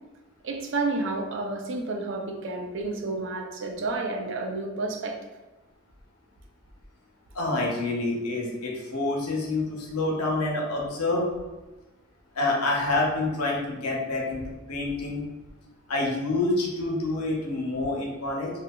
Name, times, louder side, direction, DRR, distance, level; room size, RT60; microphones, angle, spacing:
voice 1, 0.4-5.2, right 3 dB, 55° right, 2 dB, 0.3 m, -30 dB
voice 2, 7.3-11.3 12.3-15.2 15.9-18.5, left 2 dB, 90° left, -2 dB, 0.6 m, -27 dB
2.7 x 2.3 x 2.2 m, 1.1 s
head